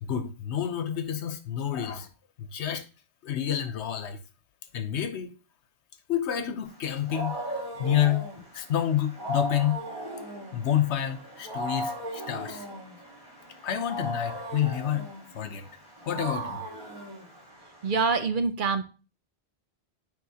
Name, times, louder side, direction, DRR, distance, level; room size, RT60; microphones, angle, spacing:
voice 1, 0.0-2.1 2.4-2.8 3.2-4.2 4.7-5.3 6.1-9.8 10.5-12.7 13.6-15.7 16.1-16.6, left 10 dB, 85° left, 1.1 m, -29 dB
Wild animals, 6.7-17.9, equal, 25° right, 3.6 m, -37 dB
voice 2, 17.8-18.8, right 5 dB, 55° right, 0.7 m, -25 dB
9.3 x 4.6 x 2.8 m
omnidirectional pair, 1.1 m